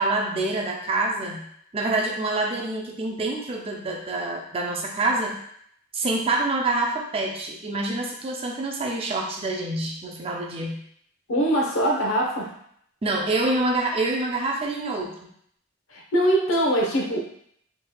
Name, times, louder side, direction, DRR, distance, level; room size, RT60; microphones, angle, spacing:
voice 1, 0.0-1.4 1.7-5.4 5.9-10.8 13.0-15.1, right 2 dB, 25° right, 0 dB, 0.4 m, -26 dB
voice 2, 11.3-12.5 15.9-17.2, right 1 dB, 80° left, -1 dB, 0.8 m, -22 dB
3.6 x 3.1 x 2.3 m, 0.67 s
head